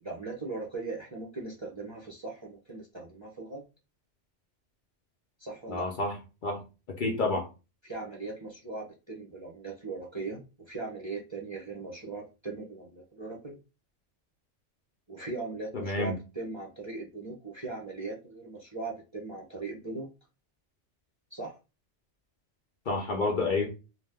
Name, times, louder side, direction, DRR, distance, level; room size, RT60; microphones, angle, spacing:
voice 1, 0.0-3.6 5.4-5.9 7.8-13.6 15.1-20.1 21.3-21.5, right 3 dB, 30° right, -3 dB, 0.6 m, -39 dB
voice 2, 5.7-6.2 6.4-6.6 7.0-7.5 15.7-16.2 22.9-23.8, left 3 dB, 55° left, 1 dB, 0.7 m, -29 dB
2.7 x 2.1 x 3.4 m, 0.29 s
omnidirectional pair, 1.2 m